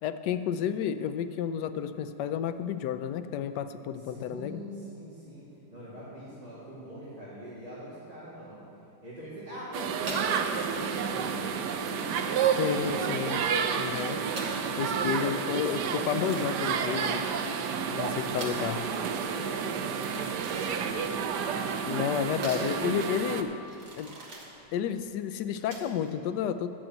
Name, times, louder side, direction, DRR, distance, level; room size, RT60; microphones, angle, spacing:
voice 1, 0.0-4.6 12.6-13.4 13.8-14.2 14.8-17.3 17.9-18.8 21.9-23.6 24.0-24.1 24.7-26.7, left 8 dB, 75° left, 10 dB, 1.1 m, -31 dB
voice 2, 4.1-8.6 9.0-13.1 14.6-15.9 17.5-21.2, equal, 20° right, -11 dB, 2.5 m, -43 dB
sound 1, 9.7-23.4, right 6 dB, 70° right, 1.2 m, -30 dB
sound 2, 10.0-26.1, right 1 dB, 45° right, 1.9 m, -44 dB
11.0 x 6.5 x 7.9 m, 2.8 s
omnidirectional pair, 2.0 m